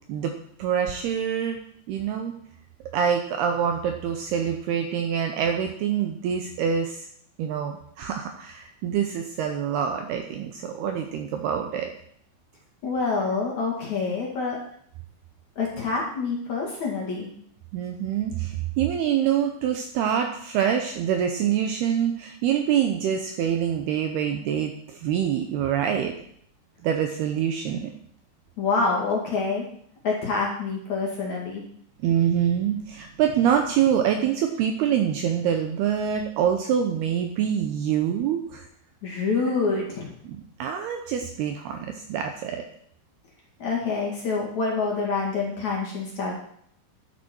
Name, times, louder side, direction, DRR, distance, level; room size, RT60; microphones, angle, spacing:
voice 1, 0.6-1.6 1.9-2.3 2.9-7.1 7.4-11.9 17.7-26.1 26.8-27.9 32.0-38.6 40.6-42.6, right 8 dB, 75° right, 5 dB, 2.5 m, -25 dB
voice 2, 12.8-14.6 15.6-17.3 28.6-29.6 30.0-31.6 39.0-40.1 43.6-46.3, left 4 dB, 50° left, -2 dB, 2.7 m, -26 dB
13.0 x 11.0 x 4.5 m, 0.65 s
omnidirectional pair, 5.5 m